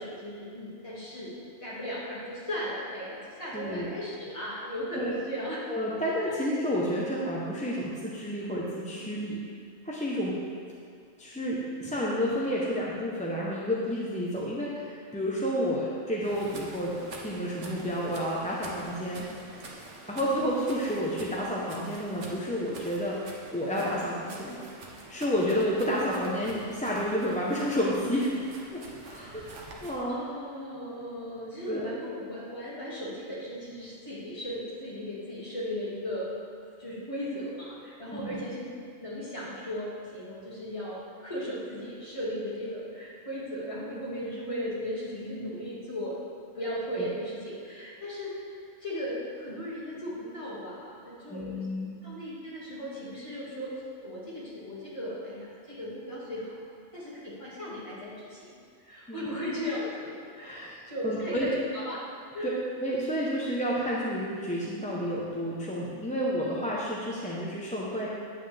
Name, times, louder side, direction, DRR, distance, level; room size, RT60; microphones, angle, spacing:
voice 1, 0.0-1.3 1.6-5.6 6.3-6.4 20.1-20.4 29.2-29.5 30.1-36.3 36.8-38.6 39.0-46.2 46.5-51.7 52.0-56.5 56.9-58.5 58.8-62.0 62.3-62.6, equal, 25° left, -8 dB, 2.4 m, -37 dB
voice 2, 3.5-3.9 4.9-5.1 5.7-9.4 9.8-10.4 11.2-19.3 20.1-23.2 23.5-24.6 25.1-28.3 28.7-29.5 29.8-30.2 31.7-31.9 38.1-38.3 46.9-47.1 51.3-51.9 59.1-59.3 60.4-60.7 61.0-61.5 62.8-68.1, equal, 5° left, -6 dB, 0.8 m, -30 dB
sound 1, 16.2-30.0, right 3 dB, 80° right, 1.4 m, -47 dB
9.1 x 8.7 x 3.5 m, 2.2 s
omnidirectional pair, 1.2 m